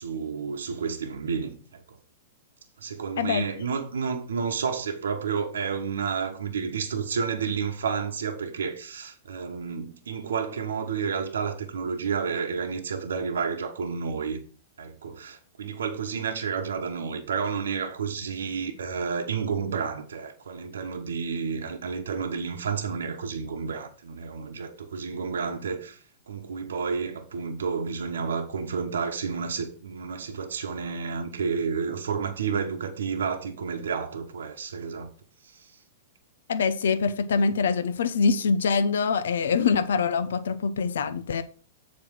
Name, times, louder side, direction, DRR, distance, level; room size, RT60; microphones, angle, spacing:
voice 1, 0.0-2.0 2.8-14.4 14.8-35.1 35.4-35.8, right 6 dB, 85° right, 1.0 m, -31 dB
voice 2, 36.5-41.4, left 5 dB, 80° left, 0.7 m, -24 dB
7.5 x 4.2 x 6.2 m
hypercardioid pair, 125°, 0 cm